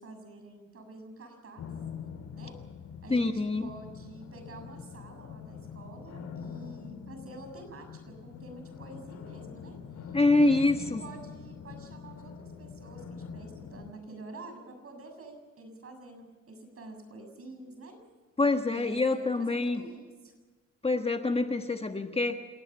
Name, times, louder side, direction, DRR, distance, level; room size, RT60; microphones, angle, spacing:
voice 1, 0.0-1.7 2.3-2.6 3.0-18.0 18.7-20.4, right 2 dB, 50° right, 6 dB, 7.1 m, -48 dB
sound 1, 1.6-13.9, left 6 dB, 70° left, 3.7 m, -44 dB
voice 2, 3.1-3.7 10.1-11.0 18.4-19.8 20.8-22.4, left 2 dB, 20° left, 6 dB, 1.5 m, -26 dB
28.0 x 18.5 x 5.7 m, 1.4 s
cardioid pair, 90°, 30 cm